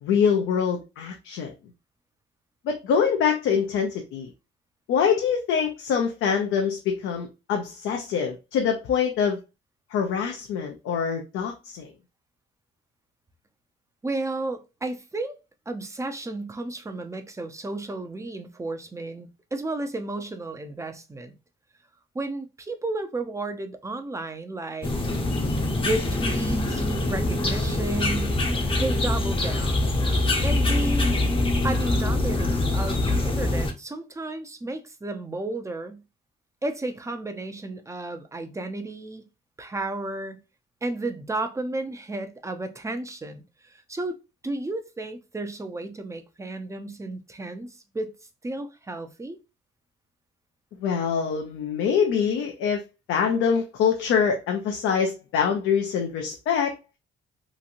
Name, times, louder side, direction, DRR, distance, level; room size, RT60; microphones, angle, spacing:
voice 1, 0.0-1.5 2.6-4.3 4.9-9.4 9.9-11.9 50.8-52.8 53.1-56.7, left 7 dB, 85° left, 0.5 m, -24 dB
voice 2, 14.0-15.4 15.7-21.3 22.1-24.9 25.8-28.4 28.7-29.8 30.4-31.1 31.6-36.0 36.6-39.2 39.6-40.4 40.8-48.1 48.4-49.4, right 2 dB, 15° right, 0.5 m, -33 dB
sound 1, 24.8-33.7, left 2 dB, 25° left, 0.6 m, -24 dB
2.9 x 2.6 x 2.5 m
cardioid pair, 90°, 20 cm